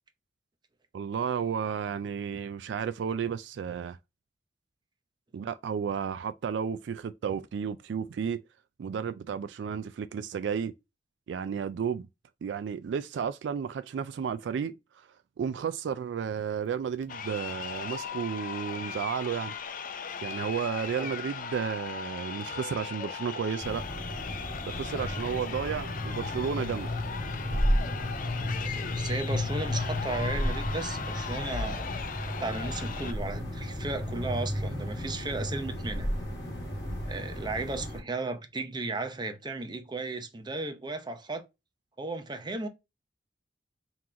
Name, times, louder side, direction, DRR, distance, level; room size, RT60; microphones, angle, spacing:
voice 1, 0.9-4.0 5.3-8.4 8.8-10.7 11.3-12.1 12.4-15.1 15.4-19.5 20.2-23.8 24.6-26.9, right 7 dB, 75° right, 0.3 m, -32 dB
Crowd, 17.0-33.1, left 6 dB, 50° left, 0.5 m, -38 dB
sound 1, 23.6-38.0, left 1 dB, 20° left, 1.9 m, -33 dB
voice 2, 28.6-31.9 32.2-36.1 37.1-41.4 42.0-42.7, right 3 dB, 25° right, 0.7 m, -35 dB
3.8 x 3.0 x 3.7 m
head